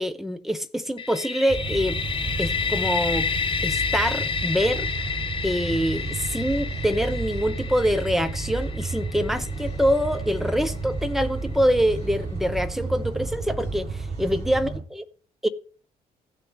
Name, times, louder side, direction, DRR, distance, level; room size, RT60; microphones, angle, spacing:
voice 1, 0.0-2.0 2.4-3.3 3.6-4.9 5.4-15.0 15.4-15.5, equal, ahead, 1.0 m, -25 dB
sound 1, 1.0-10.7, left 6 dB, 25° left, 0.8 m, -30 dB
sound 2, 1.5-14.8, right 3 dB, 55° right, 6.0 m, -32 dB
16.0 x 6.3 x 3.1 m
figure-of-eight pair, 45°, 20 cm